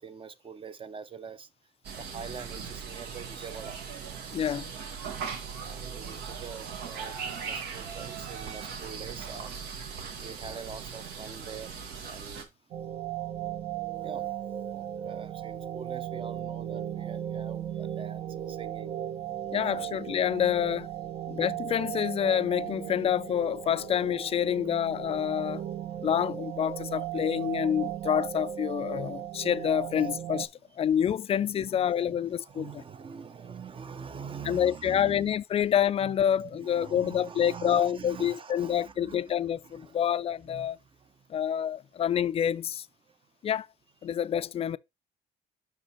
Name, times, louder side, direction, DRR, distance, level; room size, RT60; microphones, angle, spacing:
voice 1, 0.0-1.5 2.0-3.8 5.6-7.2 7.4-9.6 10.1-11.7 12.0-12.5 14.0-19.0 19.8-20.0 25.9-26.1 30.7-30.9 31.4-35.4 36.0-39.3 39.6-40.1 40.5-41.3 43.1-43.2, right 6 dB, 30° right, 0.7 m, -44 dB
sound 1, 1.8-12.4, right 6 dB, 80° right, 1.5 m, -39 dB
voice 2, 4.3-4.7 19.5-20.9 21.3-25.6 26.0-30.5 30.8-32.7 34.5-40.8 41.3-42.8 43.4-43.7 44.0-44.8, left 9 dB, 35° left, 0.4 m, -27 dB
sound 2, 12.7-30.5, right 11 dB, 55° right, 1.0 m, -36 dB
5.8 x 5.3 x 4.3 m
cardioid pair, 110°, 17 cm